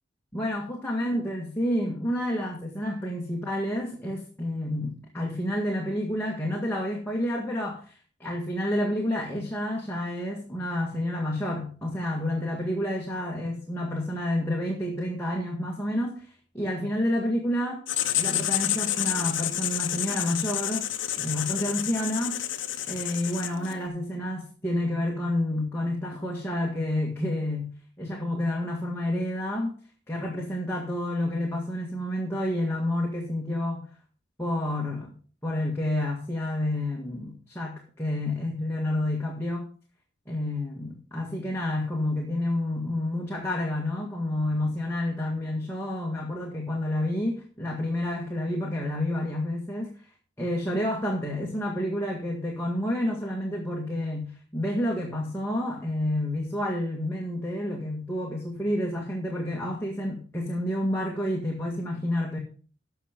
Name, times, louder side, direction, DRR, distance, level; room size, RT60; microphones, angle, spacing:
voice 1, 0.3-16.3 16.5-17.8 18.2-20.9 21.2-22.4 22.9-29.7 30.1-33.8 34.4-35.1 35.4-39.6 40.3-49.9 50.4-62.4, left 1 dB, 15° left, -2 dB, 1.7 m, -29 dB
Writing, 17.9-23.8, left 12 dB, 80° left, 0.9 m, -29 dB
14.0 x 5.8 x 5.0 m, 0.40 s
head